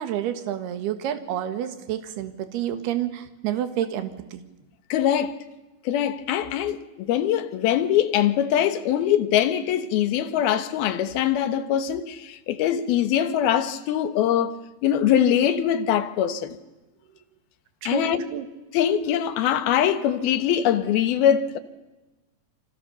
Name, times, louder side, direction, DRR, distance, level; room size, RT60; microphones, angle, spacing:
voice 1, 0.0-4.4 17.8-18.5, right 10 dB, 70° right, 3.5 m, -29 dB
voice 2, 4.9-5.4 5.8-16.6 17.8-18.2 18.7-21.6, left 10 dB, 65° left, 2.9 m, -22 dB
29.5 x 25.0 x 7.0 m
omnidirectional pair, 5.1 m